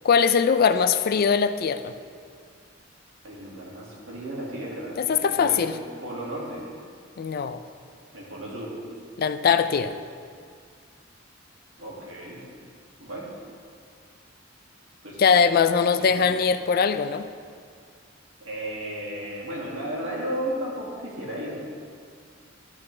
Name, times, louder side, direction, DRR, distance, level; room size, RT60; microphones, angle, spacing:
voice 1, 0.0-1.9 5.0-5.8 7.2-7.6 9.2-10.0 15.2-17.3, left 6 dB, 50° left, 11 dB, 0.3 m, -21 dB
voice 2, 3.2-5.6 6.0-6.7 8.1-8.8 11.8-12.4 13.0-13.3 15.0-15.2 15.9-16.3 18.4-21.6, right 1 dB, 85° right, -4 dB, 2.2 m, -34 dB
11.5 x 8.2 x 3.3 m, 2.1 s
head